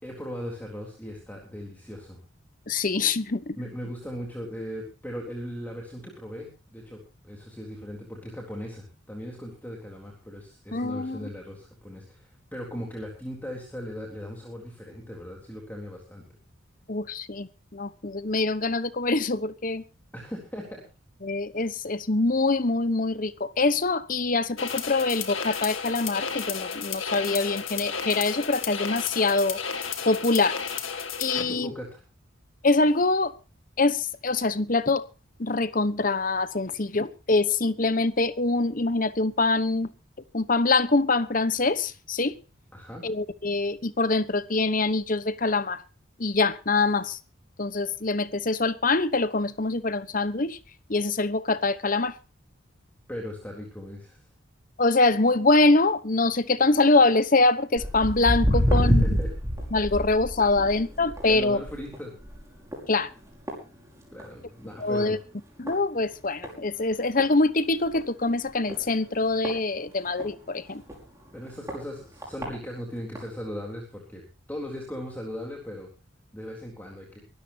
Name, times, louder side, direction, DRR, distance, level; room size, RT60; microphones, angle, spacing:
voice 1, 0.0-2.2 3.6-16.2 20.1-20.8 31.3-32.0 42.7-43.0 53.1-54.2 58.5-59.3 60.6-60.8 61.3-62.1 64.1-65.2 71.3-75.9 76.3-77.2, equal, 10° left, 3.7 m, -38 dB
voice 2, 2.7-3.6 10.7-11.3 16.9-19.8 21.2-29.6 30.1-30.6 31.2-31.7 32.6-33.3 33.8-35.0 35.4-39.9 40.3-42.4 43.0-45.8 46.2-47.2 47.6-50.6 50.9-52.2 54.8-59.0 59.7-61.6 62.9-63.1 64.8-65.2 65.6-70.8, left 3 dB, 40° left, 1.0 m, -24 dB
sound 1, 24.6-31.4, left 6 dB, 80° left, 2.4 m, -33 dB
Walk footsteps, 57.8-64.4 64.7-65.1 65.7-65.8 66.4-66.5 66.9-67.0 67.2-67.3 67.9-68.0 68.7-70.3 70.9-71.0 71.7-71.8 72.2-72.5 73.2-73.3, equal, 15° right, 5.8 m, -27 dB
23.5 x 13.5 x 2.8 m
head